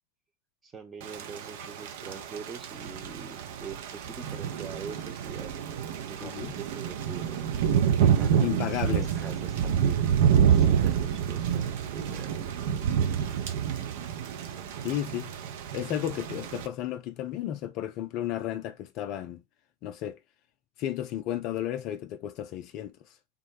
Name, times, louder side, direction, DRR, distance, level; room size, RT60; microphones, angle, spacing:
voice 1, 0.6-5.5 6.0-7.7 8.0-10.2 10.5-12.5 14.4-14.9, right 5 dB, 20° right, 0.8 m, -44 dB
Thunder / Rain, 1.0-16.7, right 8 dB, 50° right, 0.5 m, -28 dB
voice 2, 6.2-6.5 8.4-9.1 14.8-15.3 15.7-19.4 19.8-20.2 20.8-23.2, left 11 dB, 40° left, 0.3 m, -33 dB
3.5 x 2.0 x 3.1 m
figure-of-eight pair, 90°, 0 cm